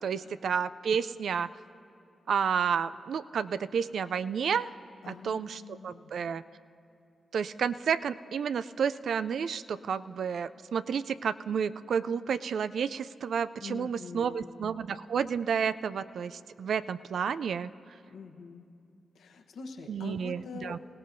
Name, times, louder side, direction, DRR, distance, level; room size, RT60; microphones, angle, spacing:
voice 1, 0.0-1.5 2.3-4.7 5.1-6.4 7.3-17.7 19.9-20.8, right 7 dB, 70° right, 14 dB, 0.3 m, -31 dB
voice 2, 5.0-6.2 13.6-14.7 18.1-18.7 19.1-20.8, left 5 dB, 80° left, 4 dB, 1.0 m, -45 dB
25.5 x 17.0 x 2.6 m, 2.6 s
supercardioid pair, 40°, 0 cm